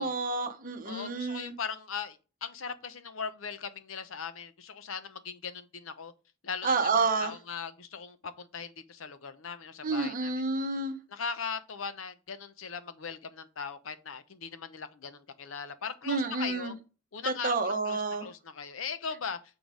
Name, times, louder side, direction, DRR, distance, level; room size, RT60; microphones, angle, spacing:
voice 1, 0.0-1.5 6.6-7.3 9.8-11.0 16.1-16.7 17.3-18.3, right 3 dB, 45° right, 1.0 m, -29 dB
voice 2, 0.8-6.1 6.4-10.3 11.1-16.8 17.1-19.4, left 6 dB, 90° left, 0.8 m, -39 dB
7.1 x 3.8 x 5.0 m
head